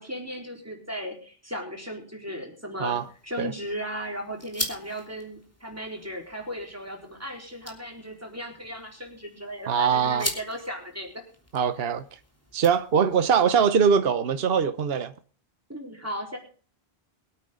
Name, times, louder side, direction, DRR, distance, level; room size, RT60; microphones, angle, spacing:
voice 1, 0.0-11.2 15.7-16.4, equal, 15° right, 4.0 m, -36 dB
sound 1, 2.9-13.3, left 1 dB, 15° left, 3.1 m, -41 dB
voice 2, 9.7-10.3 11.5-12.0 12.5-15.1, right 7 dB, 70° right, 1.1 m, -22 dB
23.5 x 8.9 x 3.8 m
omnidirectional pair, 1.0 m